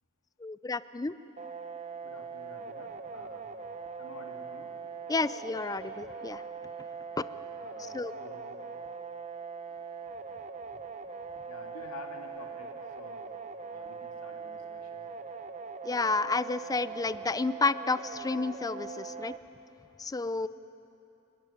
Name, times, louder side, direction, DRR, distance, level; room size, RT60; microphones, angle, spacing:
voice 1, 0.4-1.1 5.1-6.4 7.2-7.3 7.8-8.1 15.8-19.4 20.0-20.5, left 3 dB, 15° left, 15 dB, 0.4 m, -31 dB
sound 1, 1.4-19.4, right 5 dB, 35° right, 0.7 m, -42 dB
voice 2, 2.0-3.5 4.0-4.7 7.3-8.6 11.5-13.3 13.7-15.1 20.4-20.5, left 2 dB, 85° left, 2 dB, 2.4 m, -49 dB
27.5 x 12.5 x 10.0 m, 2.9 s
head